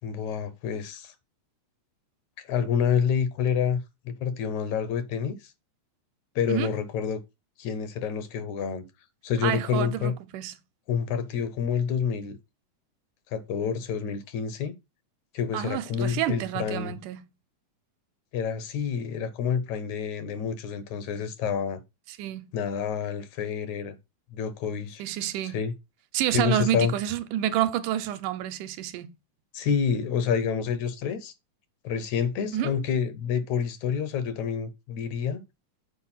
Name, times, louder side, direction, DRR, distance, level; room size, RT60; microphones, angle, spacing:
voice 1, 0.0-1.1 2.4-5.5 6.4-7.2 7.6-8.8 9.2-10.1 10.9-12.4 13.3-14.7 15.3-17.0 18.3-21.8 22.5-24.0 24.3-25.0 25.4-25.7 26.3-26.9 29.5-31.3 31.8-35.4, left 7 dB, 70° left, 2.1 m, -28 dB
voice 2, 9.4-10.5 15.5-17.2 22.1-22.5 25.0-25.6 26.1-29.1 32.5-32.7, right 12 dB, 80° right, 2.2 m, -29 dB
7.1 x 4.5 x 5.6 m
omnidirectional pair, 3.6 m